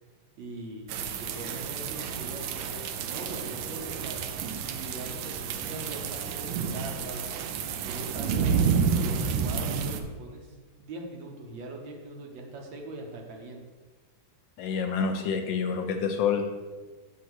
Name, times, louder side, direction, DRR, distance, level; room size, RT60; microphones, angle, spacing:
voice 1, 0.4-4.2 4.6-7.3 7.8-8.5 8.9-13.6, right 2 dB, 70° right, 1 dB, 1.6 m, -41 dB
sound 1, 0.9-10.0, right 6 dB, 90° right, 1.4 m, -30 dB
voice 2, 14.6-16.5, left 6 dB, 75° left, 5 dB, 1.2 m, -27 dB
8.1 x 2.8 x 6.1 m, 1.3 s
omnidirectional pair, 2.3 m